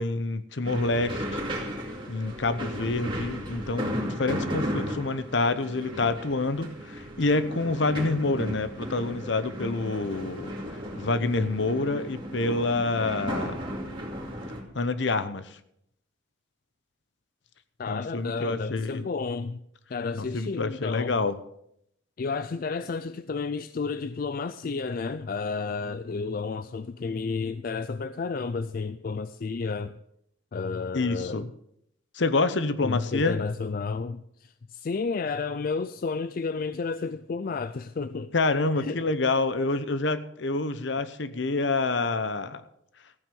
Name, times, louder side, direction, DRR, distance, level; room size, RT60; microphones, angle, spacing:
voice 1, 0.0-1.4 2.1-13.6 14.7-15.6 17.9-19.1 20.2-21.4 30.9-31.4 32.1-33.4 38.3-42.6, left 3 dB, 65° left, 0.9 m, -27 dB
sound 1, 0.6-14.6, equal, 25° right, 2.5 m, -35 dB
voice 2, 17.8-19.6 19.9-21.2 22.2-29.9 30.5-31.5 32.8-38.3 38.8-39.0, left 4 dB, 45° left, 0.4 m, -31 dB
14.5 x 9.1 x 5.4 m
head